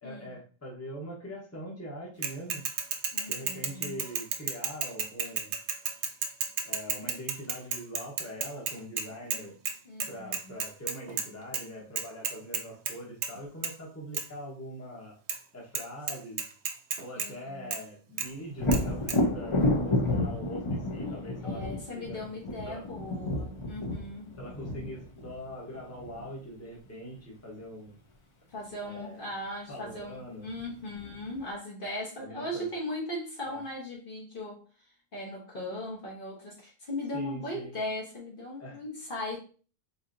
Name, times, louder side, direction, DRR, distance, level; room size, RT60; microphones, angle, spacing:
voice 1, 0.0-2.6 3.3-5.6 6.6-9.6 10.1-15.1 15.5-16.4 17.0-22.2 22.6-22.8 24.4-28.0 28.8-29.2 29.7-30.5 32.2-32.6 33.4-33.6 37.1-37.7 38.6-38.8, equal, 15° left, -2 dB, 0.9 m, -42 dB
Bicycle / Mechanisms, 2.2-9.4 9.7-9.8 10.0-11.3 11.5-11.6 12.0-12.9 13.2-13.4 13.6-13.7 14.1-14.2 15.3-15.4 15.7-15.8 16.1-17.3 17.7-17.8 18.2-18.3 18.7-18.8 19.1-19.2, right 7 dB, 75° right, 0.9 m, -32 dB
voice 2, 3.1-4.0 9.8-10.5 17.1-17.7 21.4-24.3 28.5-34.6 35.1-39.4, left 1 dB, 50° left, -2 dB, 1.1 m, -38 dB
Thunder, 18.6-26.3 29.9-30.0 30.5-31.4, left 1 dB, 35° left, 0.6 m, -30 dB
4.2 x 2.7 x 2.5 m, 0.39 s
omnidirectional pair, 1.2 m